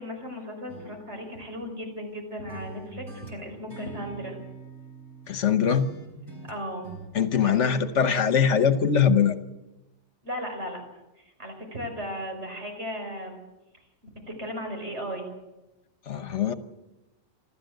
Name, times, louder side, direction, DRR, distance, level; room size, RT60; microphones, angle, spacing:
voice 1, 0.0-4.4 6.5-6.9 7.4-7.7 10.2-10.8 11.2-13.4 14.3-15.3, equal, 65° right, 3 dB, 5.7 m, -36 dB
sound 1, 0.7-2.2 2.5-5.4 5.7-7.1, right 3 dB, 20° right, 4.2 m, -44 dB
voice 2, 5.3-5.9 7.1-9.3 16.1-16.5, left 7 dB, 70° left, 11 dB, 1.3 m, -22 dB
27.5 x 13.0 x 7.9 m, 1.0 s
omnidirectional pair, 1.3 m